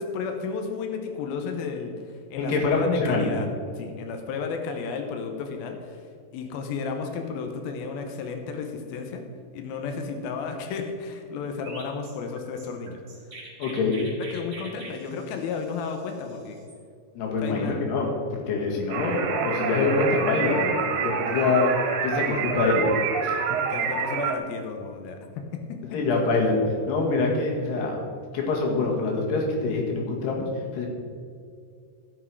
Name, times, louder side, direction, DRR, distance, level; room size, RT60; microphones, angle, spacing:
voice 1, 0.0-3.5 3.8-6.1 6.3-9.2 9.5-13.0 14.3-16.6 17.3-17.8 23.7-25.4 25.7-26.0, left 5 dB, 80° left, 4 dB, 2.2 m, -33 dB
voice 2, 2.4-3.3 13.6-14.0 17.2-21.7 22.0-22.8 23.2-23.4 25.9-26.6 26.9-28.0 28.3-30.5 30.7-30.9, left 3 dB, 65° left, 0 dB, 3.5 m, -25 dB
Chirp tweet, 11.6-16.8, right 2 dB, 35° right, 3.2 m, -45 dB
sound 1, 18.9-24.4, right 6 dB, 80° right, 3.1 m, -27 dB
16.5 x 6.2 x 4.7 m, 2.3 s
omnidirectional pair, 5.5 m